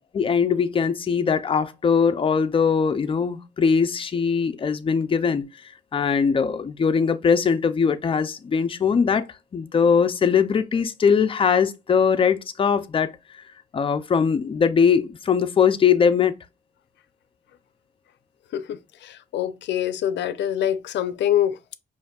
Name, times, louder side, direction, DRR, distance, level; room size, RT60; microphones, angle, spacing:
voice 1, 0.1-5.5 5.9-9.3 9.5-13.1 13.7-16.4, left 6 dB, 30° left, 0.4 m, -21 dB
voice 2, 18.5-21.7, left 11 dB, 85° left, 0.5 m, -25 dB
5.0 x 2.5 x 2.2 m
wide cardioid pair, 135°, 18 cm